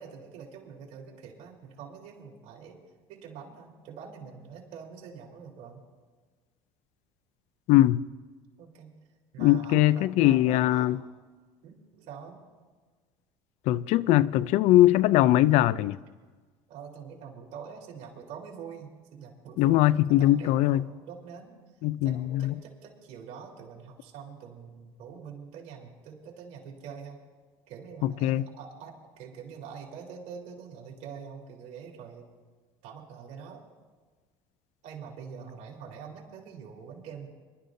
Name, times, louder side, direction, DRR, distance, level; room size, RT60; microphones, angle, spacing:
voice 1, 0.0-2.8 3.1-5.8 8.6-8.9 9.3-10.9 11.6-12.5 16.7-21.6 22.0-27.2 27.7-32.3 32.8-33.6 34.8-37.3, right 6 dB, 70° right, 3.6 m, -45 dB
voice 2, 7.7-8.0 9.4-11.0 13.7-16.0 19.6-20.8 21.8-22.5 28.0-28.4, left 15 dB, 70° left, 0.4 m, -21 dB
25.5 x 12.5 x 2.7 m
cardioid pair, 130°, 12 cm